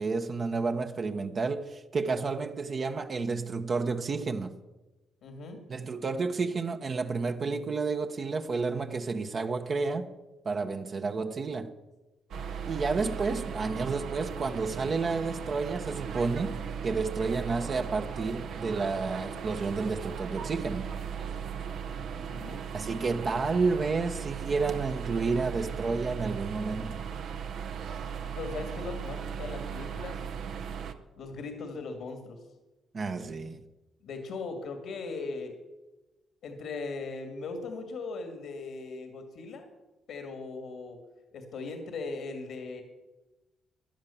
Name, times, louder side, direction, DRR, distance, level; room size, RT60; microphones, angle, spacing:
voice 1, 0.0-4.5 5.7-10.1 10.4-11.7 12.6-20.9 22.7-27.0 32.9-33.6, right 4 dB, 50° right, 1.2 m, -30 dB
voice 2, 5.2-5.6 22.1-22.6 28.3-30.3 31.2-32.4 34.0-35.6 36.4-39.7 40.1-41.0 41.3-42.8, left 3 dB, 80° left, 2.3 m, -39 dB
sound 1, 12.3-30.9, right 7 dB, 70° right, 1.1 m, -37 dB
15.5 x 10.5 x 7.2 m
cardioid pair, 70°, 0 cm